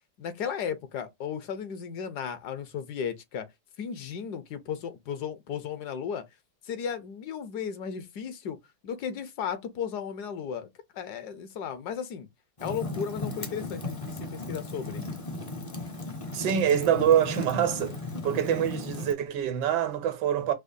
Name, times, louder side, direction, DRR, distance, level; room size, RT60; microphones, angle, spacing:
voice 1, 0.2-3.5 3.8-6.2 6.6-8.6 8.8-10.7 10.9-12.3 12.6-15.0, left 7 dB, 75° left, 1.3 m, -35 dB
Fire, 12.6-19.1, left 2 dB, 40° left, 0.4 m, -36 dB
voice 2, 16.3-18.0 18.2-20.5, right 9 dB, 80° right, 1.4 m, -25 dB
5.0 x 2.1 x 2.6 m
omnidirectional pair, 1.8 m